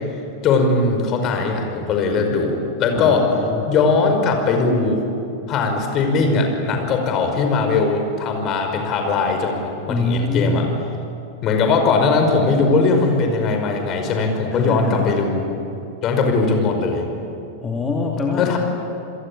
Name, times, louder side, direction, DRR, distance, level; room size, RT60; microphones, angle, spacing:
voice 1, 0.4-3.3 3.7-5.0 5.5-10.7 11.4-15.5 16.0-17.0 18.4-18.6, left 4 dB, 35° left, 4 dB, 5.4 m, -19 dB
voice 2, 2.9-3.7 9.9-10.7 14.5-15.2 17.6-18.5, left 3 dB, 15° left, -1 dB, 3.0 m, -24 dB
28.5 x 22.0 x 8.7 m, 2.7 s
figure-of-eight pair, 90°, 0 cm